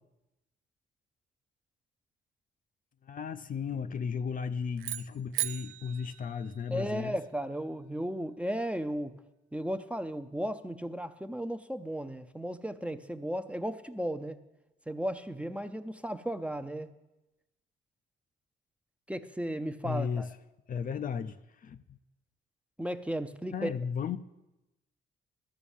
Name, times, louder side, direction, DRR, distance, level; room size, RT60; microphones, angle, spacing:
voice 1, 3.0-7.2 19.8-20.3 20.7-22.0 23.5-24.2, left 6 dB, 45° left, 0.5 m, -35 dB
sound 1, 4.8-7.1, right 16 dB, 90° right, 0.4 m, -38 dB
voice 2, 6.7-9.2 9.5-14.4 14.9-16.9 19.1-20.3 22.8-23.7, equal, 5° right, 0.5 m, -35 dB
12.5 x 6.0 x 7.2 m
cardioid pair, 90°, 20 cm